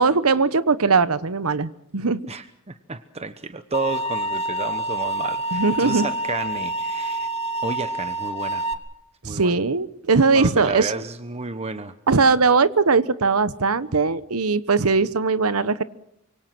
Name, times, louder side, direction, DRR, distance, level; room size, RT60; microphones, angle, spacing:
voice 1, 0.0-2.2 5.5-6.1 9.2-10.9 12.1-15.8, right 4 dB, 75° right, 15 dB, 1.0 m, -20 dB
voice 2, 2.3-7.3 7.6-8.6 9.2-9.5 10.3-11.9, right 3 dB, 30° right, 10 dB, 1.1 m, -31 dB
sound 1, 3.7-8.7, right 1 dB, 30° left, 2.4 m, -27 dB
25.5 x 24.0 x 6.2 m, 0.78 s
head